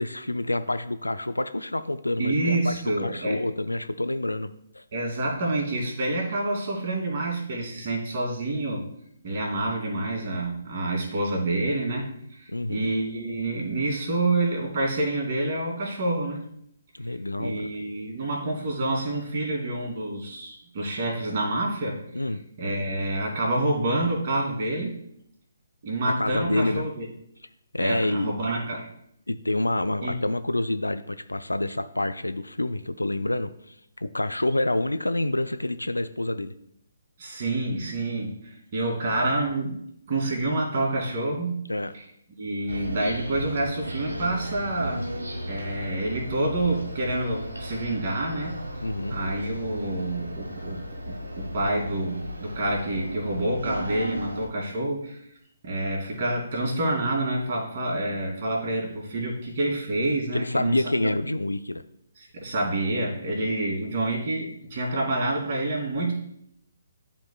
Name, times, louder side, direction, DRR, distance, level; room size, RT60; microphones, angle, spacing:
voice 1, 0.0-4.8 12.5-12.9 16.9-17.7 22.1-22.4 26.0-26.8 27.7-28.3 29.3-33.5 34.0-36.5 41.7-41.9 48.8-49.2 60.3-61.8, left 1 dB, 85° left, 11 dB, 0.4 m, -27 dB
voice 2, 2.2-3.4 4.9-8.8 9.2-16.5 17.4-22.0 22.6-24.9 25.8-27.1 27.8-28.8 30.0-30.2 37.2-38.4 38.7-39.8 40.1-41.6 41.9-42.0 42.4-45.0 45.4-48.5 49.1-50.8 51.1-55.2 55.6-61.1 62.3-66.1, right 2 dB, 40° right, -2 dB, 2.4 m, -28 dB
sound 1, 42.7-54.5, equal, 75° right, 1.5 m, -35 dB
11.5 x 4.2 x 2.3 m, 0.73 s
figure-of-eight pair, 135°, 0 cm